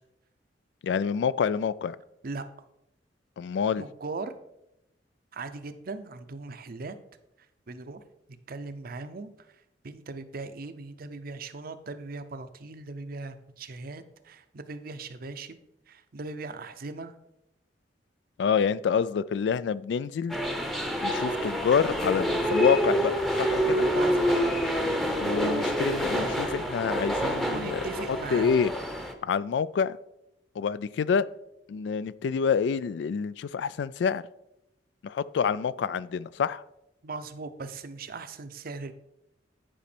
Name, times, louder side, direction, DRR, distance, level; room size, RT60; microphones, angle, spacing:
voice 1, 0.8-2.0 3.4-3.8 18.4-20.4 21.0-23.9 25.2-28.7 29.2-30.0 30.6-31.3 31.7-34.2 35.0-36.6, left 6 dB, 70° left, 18 dB, 0.3 m, -27 dB
voice 2, 3.8-4.3 5.3-7.0 7.7-8.0 8.5-9.3 9.8-15.6 15.9-17.1 23.9-24.4 27.5-28.6 37.0-38.9, right 3 dB, 55° right, 11 dB, 0.6 m, -39 dB
sound 1, 20.3-29.1, equal, ahead, 0.7 m, -27 dB
10.0 x 5.1 x 4.3 m, 0.85 s
head